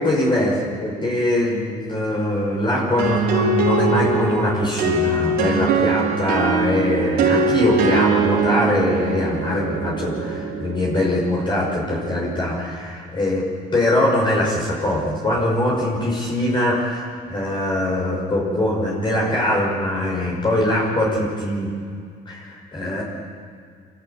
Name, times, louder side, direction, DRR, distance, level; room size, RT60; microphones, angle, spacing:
voice 1, 0.0-13.4 13.7-21.7 22.3-23.0, left 1 dB, 25° left, -3 dB, 5.8 m, -22 dB
sound 1, 3.0-12.6, right 3 dB, 70° right, 4.5 m, -22 dB
27.5 x 13.5 x 9.1 m, 2.2 s
cardioid pair, 110°, 17 cm